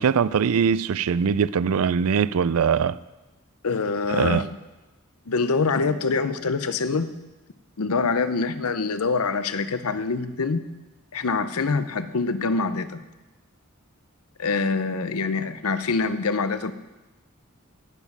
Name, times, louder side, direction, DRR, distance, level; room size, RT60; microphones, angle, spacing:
voice 1, 0.0-3.0 4.1-4.4, right 6 dB, 80° right, 0.4 m, -22 dB
voice 2, 3.6-4.5 5.3-7.2 7.8-10.7 11.1-13.1 14.4-16.7, left 4 dB, 90° left, 0.7 m, -25 dB
17.5 x 7.2 x 5.5 m
head